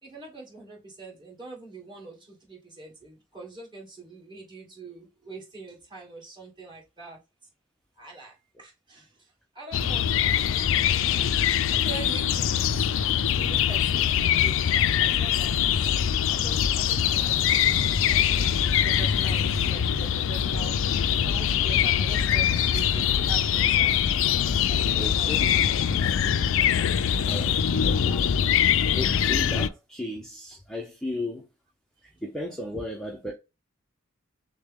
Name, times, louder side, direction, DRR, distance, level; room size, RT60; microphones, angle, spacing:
voice 1, 0.0-7.2 8.0-10.4 10.9-12.6 13.4-17.6 18.1-24.0 24.7-25.5 25.8-26.2 27.2-28.5 32.1-32.2, right 4 dB, 25° right, 2.2 m, -44 dB
sound 1, 9.7-29.7, left 9 dB, 65° left, 0.4 m, -23 dB
voice 2, 25.0-25.4 27.2-27.5 28.0-28.1 29.0-31.5 32.2-33.3, left 1 dB, 5° left, 0.6 m, -35 dB
6.3 x 2.2 x 3.6 m
head